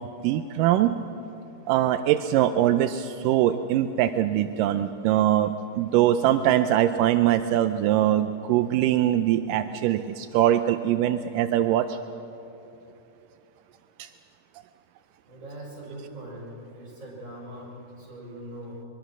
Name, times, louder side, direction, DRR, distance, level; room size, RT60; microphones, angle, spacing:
voice 1, 0.2-1.0 1.7-12.0 14.0-14.1, right 12 dB, 85° right, 10 dB, 2.2 m, -22 dB
voice 2, 15.3-18.9, right 1 dB, 20° right, -4 dB, 6.9 m, -41 dB
23.5 x 22.5 x 6.1 m, 2.9 s
omnidirectional pair, 3.8 m